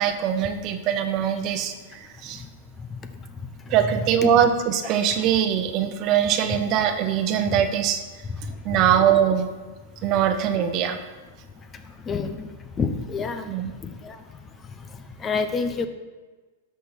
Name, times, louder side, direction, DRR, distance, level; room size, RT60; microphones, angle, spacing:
voice 1, 0.0-2.4 3.7-8.0 8.6-9.5 10.0-11.0 13.5-13.7, right 9 dB, 40° right, 8 dB, 1.0 m, -22 dB
voice 2, 12.1-12.5 12.8-13.5 14.0-14.2 15.2-15.9, left 4 dB, 25° left, 8 dB, 0.9 m, -26 dB
12.0 x 6.1 x 4.3 m, 1.3 s
hypercardioid pair, 120°, 0 cm